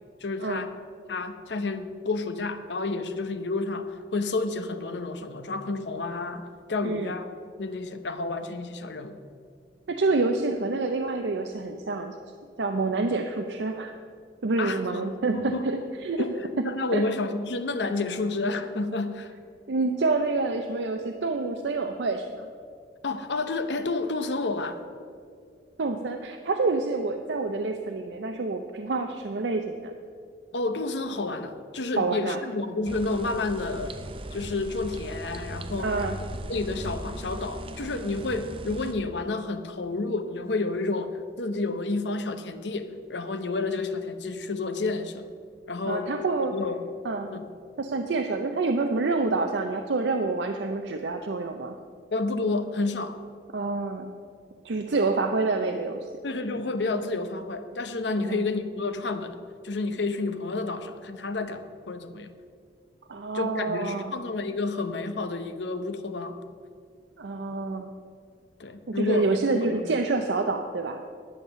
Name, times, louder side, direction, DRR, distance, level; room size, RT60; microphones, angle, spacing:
voice 1, 0.2-0.7 1.1-6.4 6.7-7.3 7.6-9.2 14.6-15.6 16.2-19.3 23.0-24.8 30.5-33.9 34.3-35.9 36.5-45.3 45.7-46.8 47.3-47.5 52.1-53.2 56.2-59.4 59.6-62.3 63.3-66.4 68.6-69.8, left 3 dB, 85° left, 9 dB, 0.8 m, -30 dB
voice 2, 9.9-12.2 12.6-13.9 14.4-16.4 16.9-17.0 19.7-22.5 25.8-29.9 32.0-32.4 35.8-36.2 45.9-46.5 47.0-47.3 47.8-51.8 53.5-54.1 54.6-56.1 58.2-58.5 63.1-64.1 67.2-67.9 68.9-71.0, right 3 dB, 85° right, 5 dB, 0.6 m, -27 dB
sound 1, 32.9-38.9, right 1 dB, 30° right, 0.6 m, -38 dB
10.5 x 7.3 x 6.7 m, 2.1 s
head